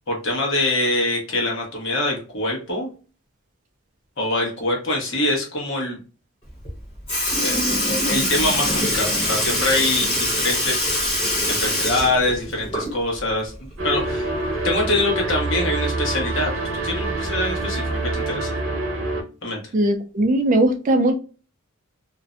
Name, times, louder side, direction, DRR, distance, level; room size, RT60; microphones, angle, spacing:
voice 1, 0.1-2.9 4.2-6.0 7.4-10.9 11.5-14.3 14.6-18.5 19.4-19.6, left 2 dB, 60° left, 0 dB, 1.0 m, -24 dB
Sink (filling or washing) / Liquid, 6.6-6.8 7.1-13.2 13.5-13.6 15.2-15.3 16.2-16.3 17.1-17.3 18.2-18.3, left 1 dB, 25° left, 1.1 m, -23 dB
sound 1, 13.8-19.2, right 2 dB, 70° right, 0.8 m, -26 dB
voice 2, 19.7-21.2, right 1 dB, 35° right, 5 dB, 0.3 m, -19 dB
2.5 x 2.1 x 2.4 m, 0.35 s
head